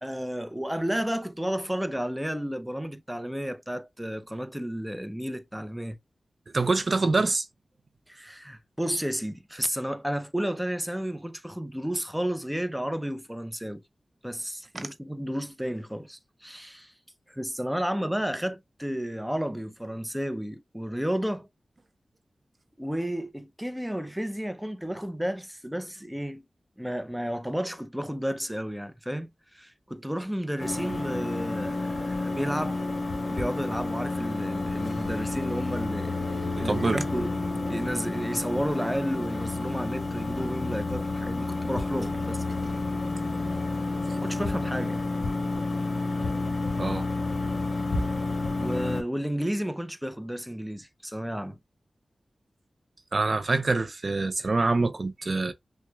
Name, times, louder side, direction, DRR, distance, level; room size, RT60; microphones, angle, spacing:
voice 1, 0.0-6.0 8.1-13.8 14.2-16.9 17.3-21.5 22.8-26.4 26.8-32.8 33.3-37.4 37.7-42.4 44.1-45.0 48.6-51.6, equal, 5° right, 0.6 m, -32 dB
voice 2, 6.5-7.5 14.8-14.9 36.6-37.0 46.8-47.0 53.1-55.5, right 3 dB, 50° right, 0.5 m, -25 dB
sound 1, 30.6-49.0, left 3 dB, 50° left, 1.4 m, -30 dB
5.9 x 2.2 x 2.2 m
cardioid pair, 45°, 0 cm